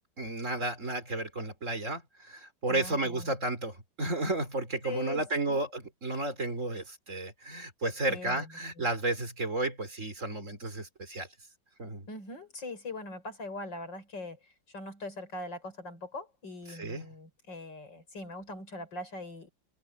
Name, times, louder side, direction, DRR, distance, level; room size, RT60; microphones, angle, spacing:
voice 1, 0.2-11.3 11.8-12.1 16.7-17.1, right 2 dB, 40° right, 3.9 m, -33 dB
voice 2, 2.7-3.3 4.8-5.6 8.1-8.9 12.1-19.5, left 2 dB, 75° left, 6.2 m, -41 dB
omnidirectional pair, 2.0 m